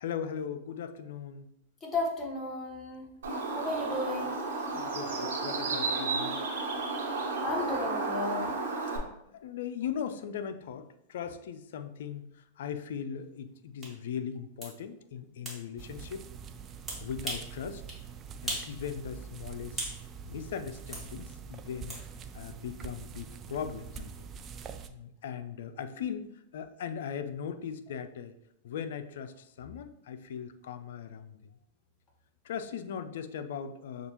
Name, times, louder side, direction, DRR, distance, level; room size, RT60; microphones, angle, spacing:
voice 1, 0.0-1.5 4.7-6.4 8.5-16.3 17.0-17.8 18.4-19.8 20.2-22.0 22.3-24.4 24.9-28.3 28.6-31.4 32.4-34.1, left 7 dB, 70° left, 10 dB, 0.4 m, -39 dB
voice 2, 1.8-3.1 3.5-4.4 7.4-8.4, left 2 dB, 20° left, -1 dB, 1.4 m, -33 dB
Bird, 3.2-9.0, right 3 dB, 80° right, 1.2 m, -32 dB
sound 1, 13.8-13.9 14.6-14.7 15.5-15.6 16.9-17.5 17.9-18.0 18.5-18.7 19.1-20.0 20.9-21.1 21.9-22.0, right 1 dB, 10° right, 1.6 m, -37 dB
sound 2, 15.8-24.9, right 7 dB, 30° right, 0.4 m, -45 dB
6.6 x 2.4 x 3.0 m, 0.78 s
hypercardioid pair, 110°, 0 cm